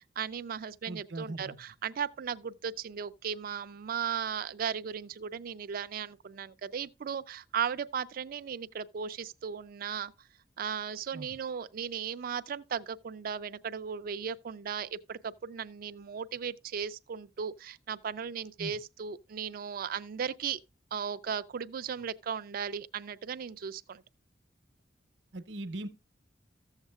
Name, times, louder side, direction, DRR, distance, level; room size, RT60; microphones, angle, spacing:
voice 1, 0.0-10.1 10.6-20.6 20.9-24.0, right 7 dB, 50° right, 0.4 m, -36 dB
voice 2, 0.9-1.6 11.1-11.3 18.6-18.7 25.3-25.9, right 2 dB, 70° right, 0.8 m, -40 dB
14.0 x 7.3 x 2.3 m
head